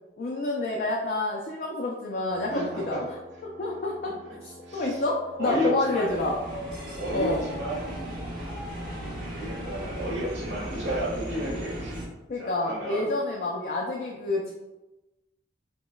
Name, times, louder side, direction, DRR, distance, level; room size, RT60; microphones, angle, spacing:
voice 1, 0.2-3.1 3.4-4.1 4.4-6.4 7.1-7.4 12.3-14.5, left 2 dB, 50° left, -2 dB, 0.4 m, -28 dB
sound 1, 2.3-9.0, right 2 dB, 10° right, 0.9 m, -48 dB
voice 2, 2.5-3.0 4.6-5.0 5.4-6.1 6.9-7.9 9.4-12.0 12.4-13.1, equal, 80° right, -5 dB, 1.4 m, -32 dB
sound 2, 6.1-12.1, equal, 50° right, 1.2 m, -36 dB
5.0 x 2.1 x 2.2 m, 1.0 s
head